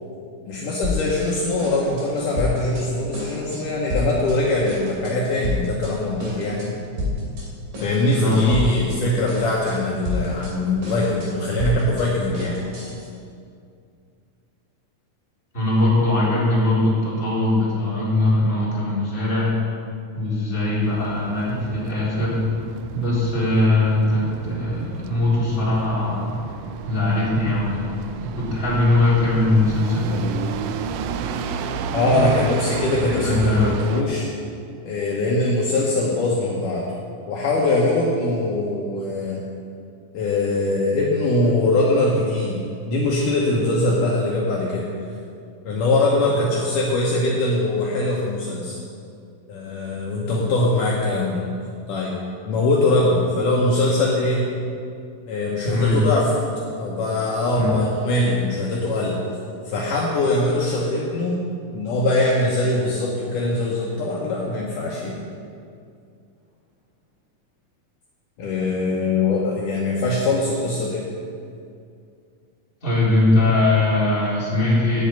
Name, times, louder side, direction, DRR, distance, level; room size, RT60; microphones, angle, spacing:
voice 1, 0.5-6.8 7.8-12.6 31.9-34.3 34.9-36.9 37.3-39.4 40.1-42.6 42.9-44.8 45.6-48.8 49.5-51.4 51.9-52.2 52.5-54.5 55.3-56.3 56.8-59.2 59.7-61.4 61.7-65.2 68.4-71.1, left 2 dB, 70° left, -4 dB, 2.4 m, -22 dB
sound 1, 0.8-1.3 1.6-2.8 3.1-3.6 3.9-4.4 4.7-5.9 6.2-6.7 7.0-7.4 7.7-9.0 9.3-9.7 10.0-13.1, left 2 dB, 65° right, 4.2 m, -29 dB
voice 2, 8.1-8.5 15.5-19.5 20.1-22.4 22.9-26.4 26.8-27.9 28.2-30.4 33.1-33.7 55.6-56.0 57.5-57.8 72.8-75.1, left 2 dB, 15° left, -9 dB, 3.6 m, -21 dB
sound 2, 20.8-34.0, right 6 dB, 85° right, 1.7 m, -32 dB
8.7 x 7.8 x 9.1 m, 2.4 s
omnidirectional pair, 4.2 m